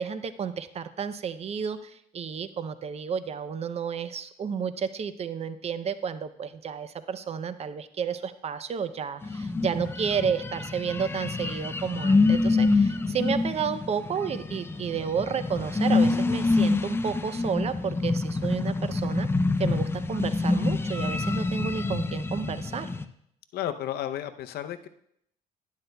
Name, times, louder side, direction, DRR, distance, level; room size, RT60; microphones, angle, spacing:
voice 1, 0.0-19.3 19.6-22.9, right 7 dB, 40° right, 13 dB, 0.5 m, -31 dB
sound 1, 9.2-23.0, left 3 dB, 15° left, 0.4 m, -26 dB
voice 2, 23.5-24.9, left 11 dB, 70° left, 9 dB, 0.6 m, -32 dB
11.5 x 10.5 x 2.2 m, 0.72 s
cardioid pair, 110°, 17 cm